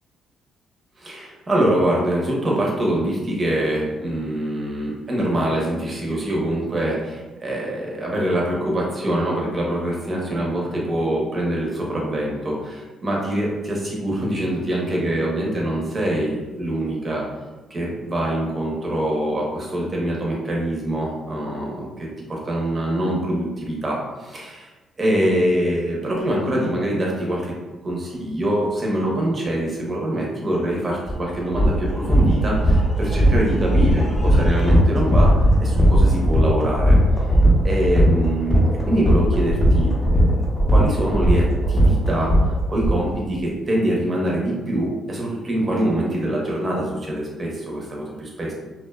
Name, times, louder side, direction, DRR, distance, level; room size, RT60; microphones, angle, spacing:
voice 1, 1.0-17.2 17.7-24.7 25.0-27.5 27.8-35.3 35.6-37.0 37.6-40.2 40.7-42.3 42.7-48.5, right 1 dB, 30° right, -2 dB, 0.7 m, -24 dB
sound 1, 31.1-31.2 31.5-42.9, equal, 20° left, 0.6 m, -17 dB
2.4 x 2.3 x 2.3 m, 1.2 s
cardioid pair, 90°, 0 cm